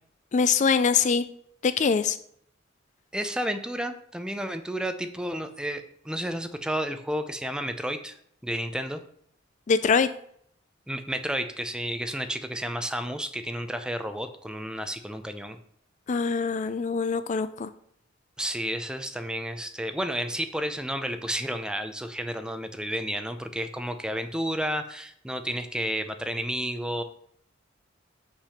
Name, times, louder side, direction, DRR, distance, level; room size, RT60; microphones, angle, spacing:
voice 1, 0.3-1.3 1.6-2.2 9.7-10.1 16.1-17.7, left 5 dB, 40° left, 13 dB, 0.4 m, -23 dB
voice 2, 3.1-8.1 8.4-9.0 10.9-15.6 18.4-27.0, equal, 5° right, 8 dB, 0.6 m, -31 dB
6.7 x 5.9 x 5.7 m, 0.66 s
head